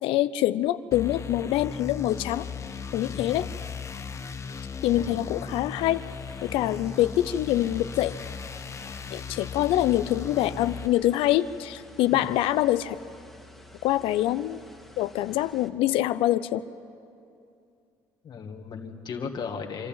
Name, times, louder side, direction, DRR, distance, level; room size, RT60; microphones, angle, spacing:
voice 1, 0.0-2.5 2.9-3.5 4.8-6.0 6.4-8.1 9.1-13.0 13.8-14.6 15.0-16.6, left 14 dB, 75° left, 13 dB, 0.5 m, -25 dB
sound 1, 0.9-10.9, left 6 dB, 35° left, 1.0 m, -37 dB
voice 2, 3.1-3.4 4.9-5.1 12.1-12.3 18.2-19.9, left 5 dB, 50° left, 4 dB, 1.9 m, -36 dB
sound 2, 5.3-15.7, left 1 dB, ahead, 1.9 m, -51 dB
26.5 x 12.0 x 8.9 m, 2.5 s
supercardioid pair, 80°, 9 cm